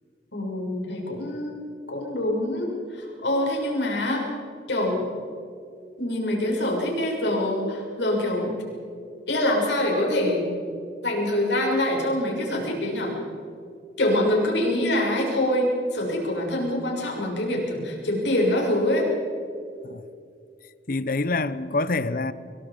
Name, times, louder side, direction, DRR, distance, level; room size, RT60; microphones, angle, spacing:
voice 1, 0.3-1.6 1.9-4.2 4.7-5.1 6.0-8.6 9.3-10.6 11.0-13.1 14.0-19.0, left 1 dB, 80° left, 6.8 m, -25 dB
voice 2, 20.9-22.3, left 3 dB, 50° left, 0.9 m, -26 dB
26.0 x 23.0 x 5.2 m
head